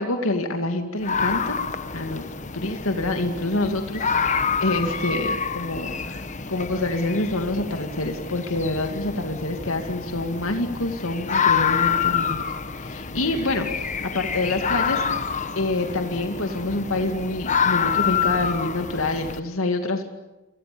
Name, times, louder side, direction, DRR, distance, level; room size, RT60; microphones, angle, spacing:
voice 1, 0.0-1.6 1.9-2.2 2.5-13.9 14.1-15.0 15.6-20.0, left 2 dB, 70° left, 5 dB, 2.5 m, -27 dB
sound 1, 1.0-19.4, left 6 dB, 35° left, 1.3 m, -27 dB
30.0 x 25.0 x 7.0 m, 1.0 s
head